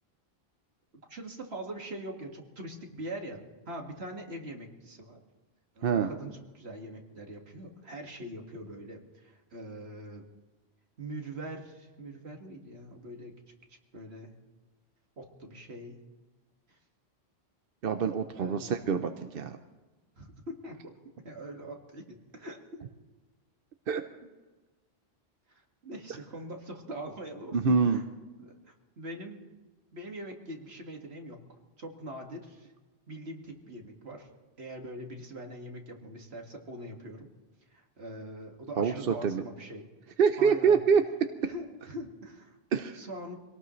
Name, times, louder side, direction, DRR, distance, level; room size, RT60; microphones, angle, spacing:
voice 1, 1.1-5.2 5.8-10.2 11.0-13.4 13.9-14.3 15.2-16.0 16.7-16.8 18.3-18.8 20.2-20.8 21.2-22.9 25.5-28.0 28.4-29.4 29.9-31.4 31.8-32.7 33.1-34.3 34.6-37.3 37.7-39.9 40.4-40.8 41.5-42.6 42.9-43.4, right 1 dB, 85° right, 2 dB, 2.2 m, -43 dB
voice 2, 17.8-19.6 23.9-24.0 27.5-28.0 38.8-39.4 40.2-41.0 42.7-43.0, right 6 dB, 65° right, 7 dB, 0.9 m, -25 dB
24.5 x 18.5 x 3.2 m, 1.2 s
omnidirectional pair, 1.0 m